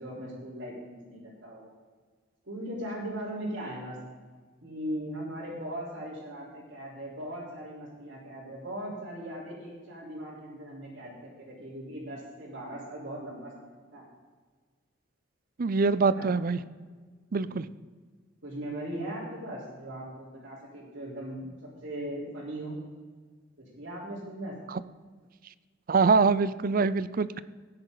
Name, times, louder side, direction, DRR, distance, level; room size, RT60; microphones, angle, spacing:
voice 1, 0.0-1.7 2.5-4.0 4.6-14.0 16.0-16.3 17.3-17.6 18.4-21.5 21.8-22.8 23.6-24.5, right 1 dB, 70° right, -9 dB, 4.1 m, -39 dB
voice 2, 15.6-16.6 17.3-17.6 24.7-24.8 25.9-27.4, right 4 dB, 50° right, 15 dB, 0.5 m, -24 dB
17.0 x 10.0 x 4.0 m, 1.5 s
head